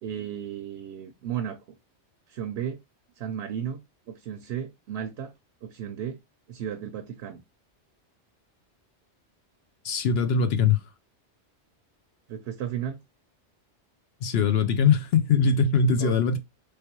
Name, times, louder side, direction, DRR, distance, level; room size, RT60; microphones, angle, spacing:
voice 1, 0.0-1.6 2.3-2.8 3.2-5.3 5.6-6.2 6.5-7.4 12.3-13.0 16.0-16.1, right 9 dB, 70° right, 0.8 m, -34 dB
voice 2, 9.8-10.8 14.2-16.4, left 5 dB, 65° left, 0.8 m, -22 dB
3.3 x 3.2 x 2.9 m
omnidirectional pair, 1.2 m